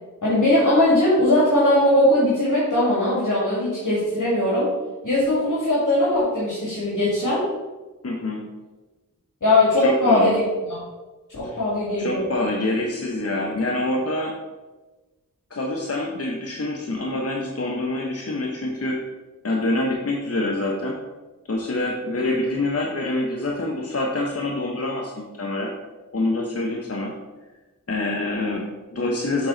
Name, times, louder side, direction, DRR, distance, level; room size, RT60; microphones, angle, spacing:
voice 1, 0.2-4.7 5.0-7.5 9.4-10.5 11.3-12.2, left 1 dB, 65° left, -7 dB, 2.3 m, -20 dB
voice 2, 8.0-8.4 9.8-10.3 11.4-11.6 12.0-14.3 15.5-19.0 19.4-21.0 21.5-25.7 26.1-27.1 27.9-29.5, left 2 dB, 45° left, 0 dB, 0.9 m, -26 dB
7.5 x 4.3 x 3.9 m, 1.2 s
wide cardioid pair, 45°, 33 cm